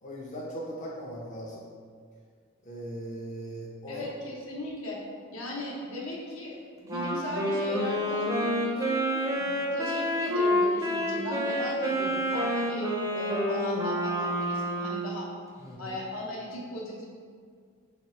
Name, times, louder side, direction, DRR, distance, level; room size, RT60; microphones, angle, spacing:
voice 1, 0.0-1.6 2.6-4.1 15.6-15.9, equal, 35° left, -5 dB, 0.5 m, -39 dB
voice 2, 3.9-5.0 5.3-6.6 6.8-9.0 9.3-15.3 15.8-17.1, left 1 dB, 70° left, -3 dB, 0.8 m, -37 dB
Wind instrument woodwind instrument, 6.9-15.2, equal, 15° right, 0.5 m, -28 dB
3.1 x 2.9 x 4.2 m, 2.1 s
head